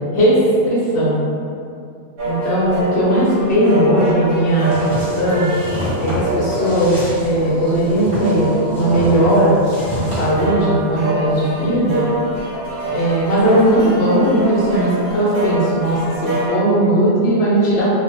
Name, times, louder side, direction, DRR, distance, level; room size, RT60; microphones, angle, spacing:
voice 1, 0.1-1.2 2.2-5.5 6.0-9.6 9.9-12.1 12.9-17.9, right 1 dB, 70° left, -8 dB, 1.0 m, -17 dB
sound 1, 2.2-16.5, right 1 dB, 75° right, 1.0 m, -26 dB
sound 2, 4.6-10.3, equal, 30° left, 1.0 m, -28 dB
2.4 x 2.2 x 2.6 m, 2.4 s
omnidirectional pair, 1.2 m